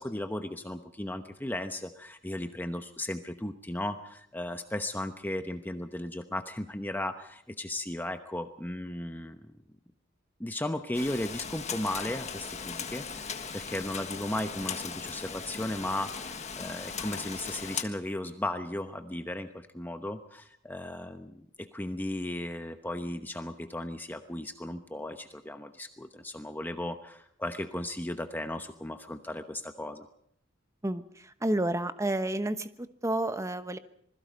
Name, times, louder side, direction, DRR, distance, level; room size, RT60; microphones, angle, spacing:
voice 1, 0.0-9.4 10.4-30.1, left 1 dB, 10° left, 7 dB, 1.0 m, -36 dB
Rain, 10.9-17.8, left 6 dB, 35° left, 1.6 m, -38 dB
voice 2, 30.8-33.8, right 1 dB, 15° right, 11 dB, 1.0 m, -30 dB
26.5 x 21.0 x 5.3 m, 0.68 s
head